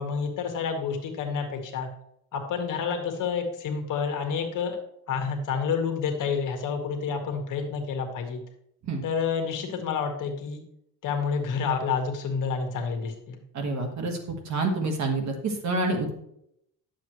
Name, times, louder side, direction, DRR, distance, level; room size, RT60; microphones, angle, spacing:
voice 1, 0.0-1.9 2.3-4.8 5.1-8.4 9.0-10.6 11.0-13.4, left 6 dB, 55° left, 4 dB, 1.5 m, -29 dB
voice 2, 13.5-16.1, right 2 dB, 45° right, 3 dB, 1.6 m, -28 dB
10.5 x 7.1 x 3.1 m, 0.75 s
cardioid pair, 160°, 37 cm